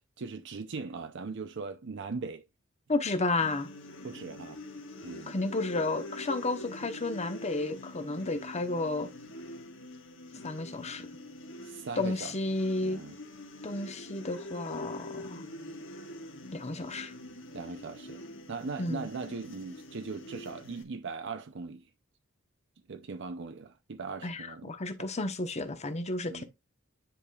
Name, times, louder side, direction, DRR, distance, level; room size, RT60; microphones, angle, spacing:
voice 1, 0.2-2.5 4.0-4.6 5.0-5.4 11.6-12.3 12.8-13.2 17.5-18.2 18.5-21.9 22.9-24.7 25.0-25.1 26.3-26.4, right 4 dB, 60° right, 0.6 m, -39 dB
voice 2, 2.9-3.7 5.3-9.1 10.4-11.1 12.0-13.0 13.6-15.4 16.5-17.1 18.8-19.1 24.2-26.4, left 2 dB, 35° left, 1.0 m, -32 dB
sound 1, 3.4-20.8, left 1 dB, 65° left, 1.7 m, -45 dB
9.9 x 5.0 x 2.4 m
head